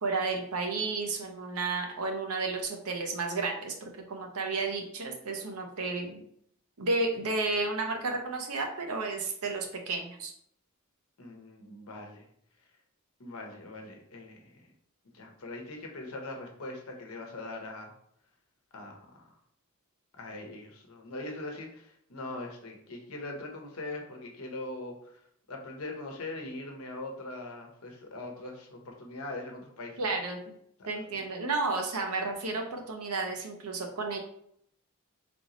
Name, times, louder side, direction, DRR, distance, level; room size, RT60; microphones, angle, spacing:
voice 1, 0.0-6.2 6.8-10.3 30.0-30.4 30.9-34.2, right 3 dB, 85° right, 3 dB, 0.8 m, -32 dB
voice 2, 11.2-12.3 13.2-14.7 15.1-17.9 18.7-19.3 20.2-25.2 25.5-30.0 31.1-31.2, left 2 dB, 75° left, 2 dB, 0.9 m, -41 dB
3.5 x 3.0 x 3.9 m, 0.69 s
head